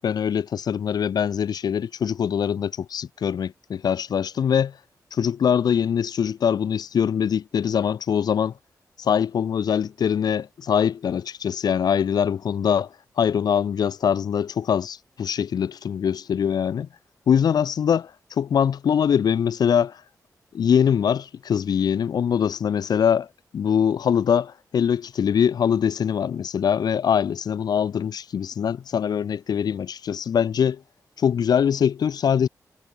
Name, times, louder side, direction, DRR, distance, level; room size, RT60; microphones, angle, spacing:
voice 1, 0.0-4.7 5.1-8.5 9.0-12.9 13.2-16.9 17.3-18.1 18.4-20.0 20.5-23.3 23.5-30.8 31.2-32.5, left 8 dB, 85° left, 1.8 m, -23 dB
cardioid pair, 70°, 7 cm